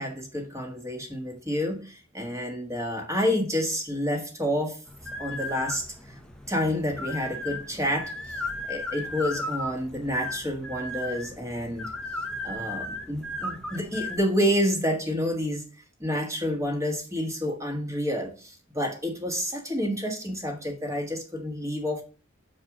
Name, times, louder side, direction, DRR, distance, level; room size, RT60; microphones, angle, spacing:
voice 1, 0.0-4.8 5.2-6.2 6.5-8.4 8.7-11.9 12.4-15.6 16.0-22.0, equal, 15° right, 1.6 m, -29 dB
sound 1, 4.9-14.2, left 2 dB, 5° left, 0.9 m, -36 dB
6.2 x 4.7 x 5.9 m
head